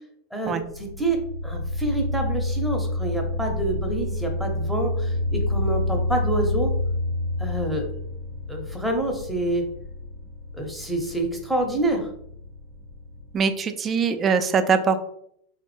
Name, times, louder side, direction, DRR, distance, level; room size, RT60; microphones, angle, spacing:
voice 1, 0.3-6.7 7.4-7.9 8.5-9.7 10.5-12.1, right 2 dB, ahead, 1 dB, 0.7 m, -27 dB
sound 1, 0.6-13.4, left 2 dB, 70° right, 0.6 m, -29 dB
voice 2, 13.3-15.0, right 5 dB, 30° right, 10 dB, 0.3 m, -22 dB
3.4 x 2.0 x 3.1 m, 0.71 s
hypercardioid pair, 110°, 0 cm